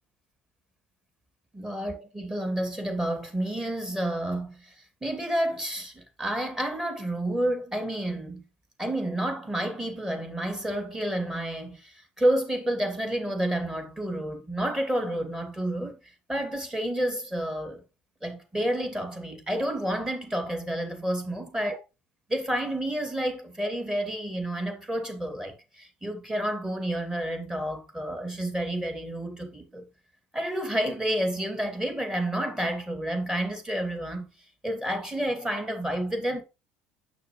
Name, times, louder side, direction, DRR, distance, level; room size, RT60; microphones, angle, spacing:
voice 1, 1.5-4.7 5.0-8.4 8.8-16.0 16.3-17.8 18.2-21.8 22.3-29.8 30.3-34.3 34.6-36.4, right 1 dB, 10° right, 2.5 m, -30 dB
6.9 x 6.5 x 3.1 m
hypercardioid pair, 70°, 5 cm